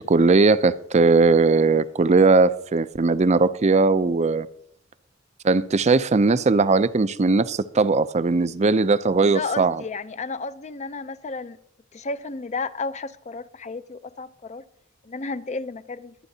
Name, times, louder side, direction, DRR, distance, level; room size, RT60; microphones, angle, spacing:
voice 1, 0.1-4.5 5.4-9.8, right 3 dB, 35° right, 0.5 m, -19 dB
voice 2, 9.2-11.6 11.9-14.6 15.0-16.1, left 3 dB, 35° left, 0.6 m, -32 dB
23.0 x 9.0 x 2.8 m
head